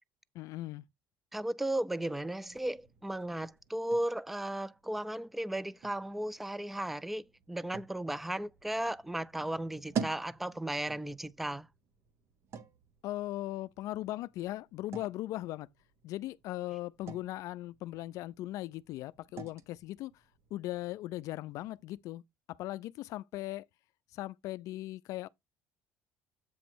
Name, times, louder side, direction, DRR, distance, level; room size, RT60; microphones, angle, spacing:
voice 1, 0.3-0.8 13.0-15.7 16.0-20.2 20.5-22.2 22.5-23.7 24.1-25.3, left 15 dB, 70° left, 0.4 m, -39 dB
voice 2, 1.3-11.7, right 1 dB, 5° right, 0.3 m, -35 dB
sound 1, 2.4-22.0, right 6 dB, 50° right, 1.3 m, -48 dB
8.4 x 3.0 x 6.1 m
cardioid pair, 120°, 6 cm